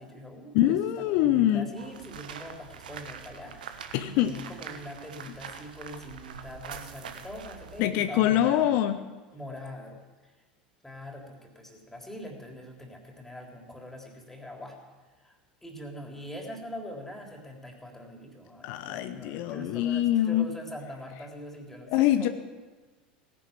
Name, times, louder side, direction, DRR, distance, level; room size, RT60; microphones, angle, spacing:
voice 1, 0.0-8.7 9.3-10.3 10.8-14.8 15.2-22.3, left 1 dB, 5° left, 2 dB, 3.5 m, -43 dB
voice 2, 0.5-1.7 3.9-4.3 7.8-9.0 18.6-20.5 21.9-22.3, left 12 dB, 55° left, 9 dB, 0.8 m, -24 dB
sound 1, 1.8-7.9, right 7 dB, 75° right, 1.2 m, -44 dB
17.5 x 11.0 x 7.3 m, 1.3 s
figure-of-eight pair, 80°, 5 cm